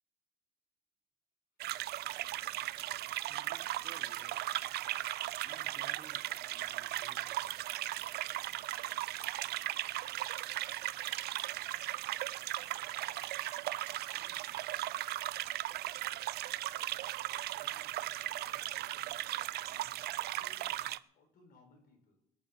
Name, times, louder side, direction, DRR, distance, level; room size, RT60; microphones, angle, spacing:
sound 1, 1.6-21.0, right 15 dB, 70° right, 0.7 m, -37 dB
voice 1, 3.3-4.4 5.4-7.6, right 5 dB, 35° right, 3.9 m, -58 dB
voice 2, 11.4-12.0 12.6-15.1 16.9-22.4, left 3 dB, 60° left, 6.3 m, -66 dB
19.5 x 7.2 x 9.0 m
cardioid pair, 110°, 17 cm